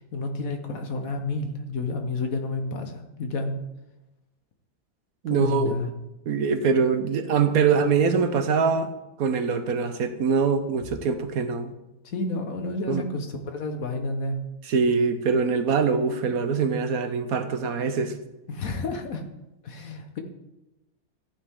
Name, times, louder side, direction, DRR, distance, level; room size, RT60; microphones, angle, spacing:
voice 1, 0.0-3.6 5.3-5.9 12.0-14.5 18.5-19.2 19.6-20.2, left 2 dB, 70° left, 5 dB, 1.6 m, -30 dB
voice 2, 5.2-5.7 6.3-8.9 9.2-11.7 12.9-13.0 14.6-18.2, right 5 dB, 75° right, 9 dB, 1.3 m, -23 dB
13.5 x 8.7 x 3.7 m, 0.98 s
omnidirectional pair, 1.6 m